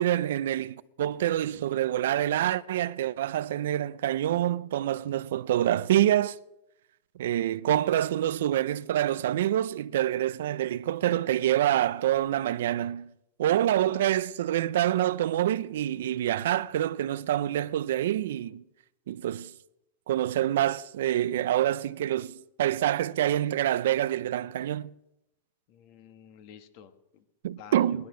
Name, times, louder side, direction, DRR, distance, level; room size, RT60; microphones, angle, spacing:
voice 1, 0.0-6.4 7.2-13.1 13.4-18.6 19.1-19.5 20.1-24.9 27.4-28.0, right 12 dB, 75° right, 0.5 m, -26 dB
voice 2, 25.7-27.3 27.5-28.1, left 8 dB, 50° left, 1.5 m, -50 dB
19.5 x 11.5 x 6.3 m
supercardioid pair, 140°, 0 cm